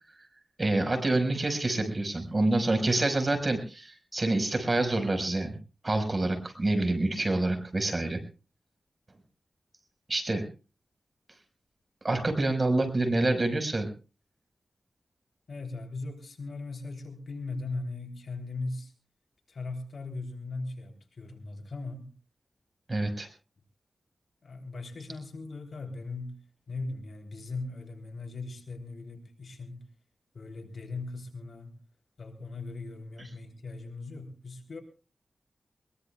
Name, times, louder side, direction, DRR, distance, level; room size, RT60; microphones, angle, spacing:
voice 1, 0.6-5.6 5.8-8.2 10.1-10.4 12.0-13.9 22.9-23.3, right 2 dB, 35° right, 6 dB, 5.1 m, -27 dB
voice 2, 15.5-18.9 19.5-22.1 24.4-26.4 26.7-29.8 30.3-31.8 32.2-34.8, left 3 dB, 75° left, 3 dB, 3.4 m, -39 dB
22.5 x 22.0 x 2.4 m, 0.34 s
wide cardioid pair, 70°, 0 cm